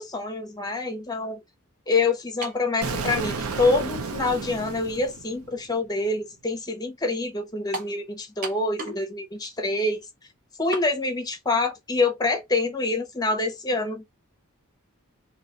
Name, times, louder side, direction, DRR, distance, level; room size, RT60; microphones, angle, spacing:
voice 1, 0.0-1.4 1.9-10.0 10.6-14.0, left 3 dB, 20° left, 0.8 m, -26 dB
sound 1, 2.4-2.7 3.6-3.7 7.7-8.0 8.4-9.1 9.3-9.4 10.7-10.9, right 2 dB, 40° right, 0.9 m, -34 dB
Explosion, 2.8-5.7, right 4 dB, 85° right, 0.6 m, -32 dB
2.8 x 2.4 x 3.8 m
head